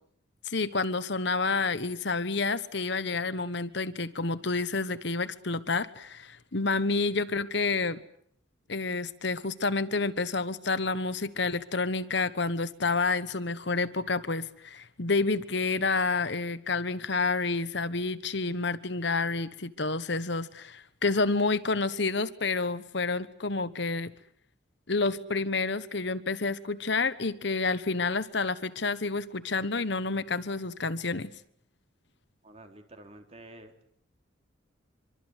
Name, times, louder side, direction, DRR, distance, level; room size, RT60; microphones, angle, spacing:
voice 1, 0.4-8.0 8.7-24.1 24.9-31.3, left 3 dB, 60° left, 13 dB, 1.2 m, -29 dB
voice 2, 32.4-33.7, right 1 dB, 30° right, 4 dB, 3.7 m, -49 dB
25.5 x 24.5 x 8.1 m, 0.68 s
head